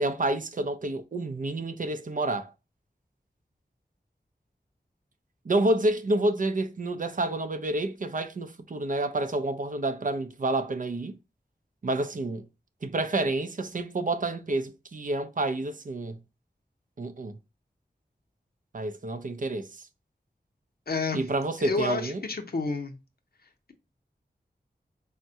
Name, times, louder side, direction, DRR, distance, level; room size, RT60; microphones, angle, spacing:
voice 1, 0.0-2.5 5.5-11.2 11.8-12.5 12.8-16.2 17.0-17.4 18.7-19.9 21.1-22.2, right 2 dB, 50° right, 0.4 m, -29 dB
voice 2, 20.9-21.2 21.6-23.0, left 4 dB, 60° left, 0.6 m, -29 dB
3.4 x 2.1 x 2.7 m
wide cardioid pair, 45°, 18 cm